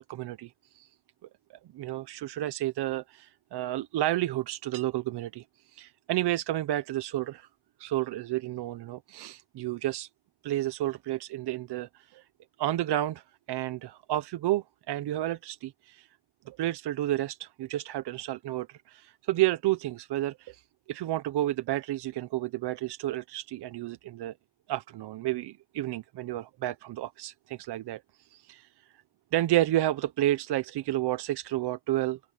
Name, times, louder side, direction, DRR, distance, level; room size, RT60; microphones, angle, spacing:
voice 1, 0.1-0.9 1.5-7.5 7.8-10.1 10.4-12.2 12.6-16.1 16.5-20.6 20.9-24.3 24.7-28.7 29.3-32.2, right 14 dB, 65° right, 1.0 m, -31 dB
open air
cardioid pair, 105°, 43 cm